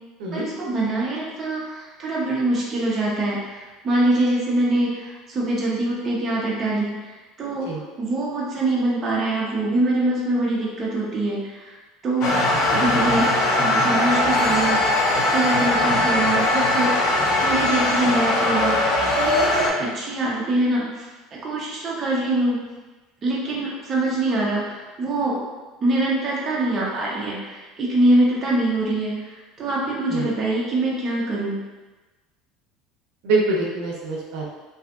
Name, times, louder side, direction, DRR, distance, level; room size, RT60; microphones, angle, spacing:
voice 1, 0.3-7.7 8.0-11.7 12.0-12.3 12.7-16.9 17.4-22.6 23.2-25.4 25.8-31.6, right 2 dB, 25° right, -5 dB, 0.5 m, -24 dB
sound 1, 12.2-19.7, left 1 dB, 55° left, 0.5 m, -20 dB
voice 2, 33.2-34.5, right 3 dB, 70° right, -2 dB, 0.5 m, -24 dB
2.6 x 2.3 x 2.3 m, 1.2 s
cardioid pair, 165°, 0 cm